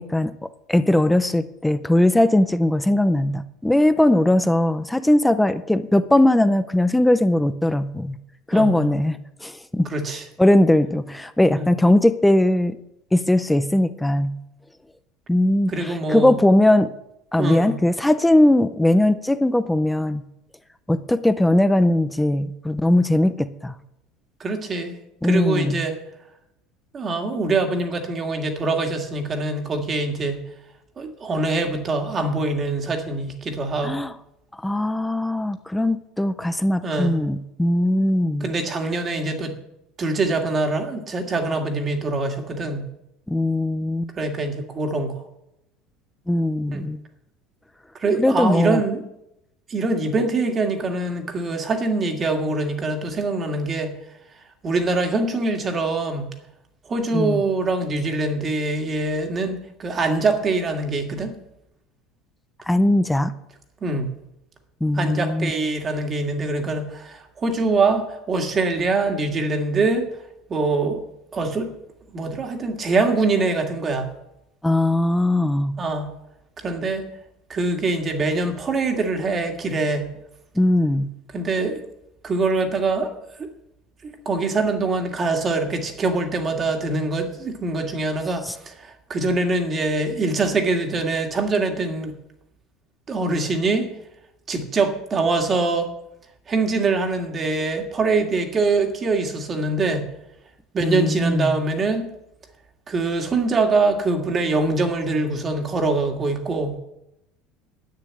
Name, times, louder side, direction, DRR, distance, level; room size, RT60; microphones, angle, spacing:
voice 1, 0.0-8.2 8.5-9.9 10.4-12.8 13.1-14.4 15.3-16.9 17.3-20.2 20.9-23.7 25.2-25.8 33.8-34.1 34.6-38.5 43.3-44.1 46.3-47.0 48.2-48.8 57.1-57.4 62.7-63.3 64.8-65.5 74.6-75.7 80.6-81.1 88.4-88.6 100.8-101.6, left 1 dB, 5° left, 12 dB, 0.5 m, -19 dB
voice 2, 8.5-8.9 9.9-10.2 11.5-11.7 15.7-16.4 17.4-17.8 24.4-25.0 25.2-26.0 26.9-30.4 31.0-34.0 36.8-37.2 38.4-39.5 40.0-42.8 44.2-45.2 46.7-46.8 48.0-49.0 49.7-53.9 54.6-56.3 56.9-61.3 63.8-64.1 64.9-70.1 70.5-71.0 71.3-71.7 72.1-74.1 75.8-76.1 76.6-77.1 77.5-80.1 81.3-81.8 82.2-83.1 83.4-83.5 84.0-92.1 93.1-93.9 94.5-95.9 96.5-100.1 100.7-102.1 102.9-106.8, right 3 dB, 20° right, 5 dB, 1.8 m, -24 dB
10.5 x 8.9 x 8.6 m, 0.85 s
cardioid pair, 165°, 0 cm